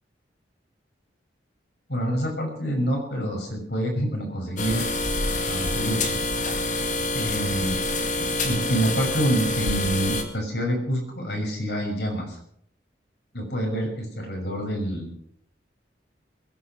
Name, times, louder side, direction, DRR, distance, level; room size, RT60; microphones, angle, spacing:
voice 1, 1.9-4.9 5.5-6.3 7.1-7.8 8.2-12.4 13.3-15.1, equal, 60° left, 0 dB, 6.2 m, -27 dB
sound 1, 4.6-10.2, left 2 dB, 40° left, 2.2 m, -26 dB
22.0 x 10.5 x 6.1 m, 0.66 s
head